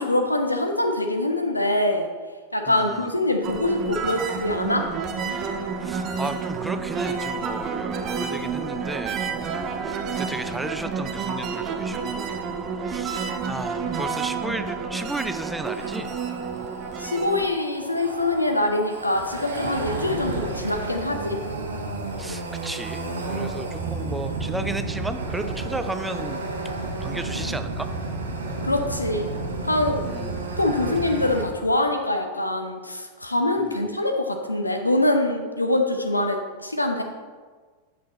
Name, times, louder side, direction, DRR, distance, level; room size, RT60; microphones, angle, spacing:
voice 1, 0.0-2.1 2.5-4.8 17.0-21.4 28.6-29.3 29.6-30.1 30.6-37.0, left 1 dB, 85° left, 4 dB, 0.8 m, -24 dB
voice 2, 2.7-3.1 5.8-9.5 9.8-12.3 12.7-16.1 22.2-26.5 27.0-27.9 30.0-30.5 33.6-33.8, right 2 dB, 5° right, 9 dB, 0.4 m, -34 dB
sound 1, 3.4-17.5, right 5 dB, 30° right, 0.7 m, -30 dB
sound 2, 15.6-31.4, right 3 dB, 70° right, 1.1 m, -32 dB
8.5 x 5.9 x 4.2 m, 1.5 s
figure-of-eight pair, 90°, 0 cm